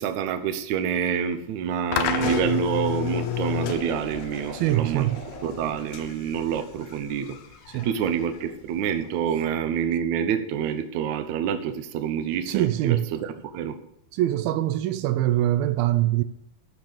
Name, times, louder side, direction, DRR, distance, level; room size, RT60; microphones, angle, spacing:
voice 1, 0.0-5.1 5.4-7.4 7.8-13.8, right 8 dB, 65° right, 2.0 m, -27 dB
sound 1, 1.9-9.0, left 9 dB, 85° left, 2.8 m, -32 dB
sound 2, 2.4-6.0 6.5-6.6 7.0-7.1 7.9-8.0 8.2-9.3, right 1 dB, 10° right, 4.1 m, -45 dB
voice 2, 4.5-5.2 7.7-7.9 12.5-13.1 14.1-16.2, right 14 dB, 80° right, 2.4 m, -23 dB
13.5 x 7.4 x 6.7 m
omnidirectional pair, 4.3 m